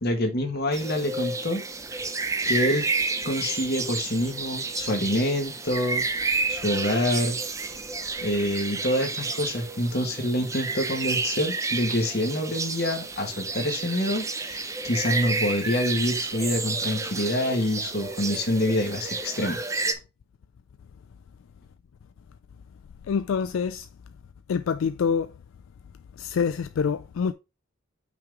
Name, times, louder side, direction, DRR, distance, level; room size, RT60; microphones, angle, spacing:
voice 1, 0.0-1.6 1.9-2.0 2.5-2.9 3.2-6.0 6.5-7.4 8.2-19.6, left 1 dB, 50° left, 1.5 m, -26 dB
sound 1, 0.7-19.9, right 3 dB, 15° right, 0.5 m, -30 dB
voice 2, 23.1-23.9 24.5-25.3 26.2-27.3, left 6 dB, 75° left, 0.3 m, -26 dB
5.8 x 3.8 x 4.6 m
head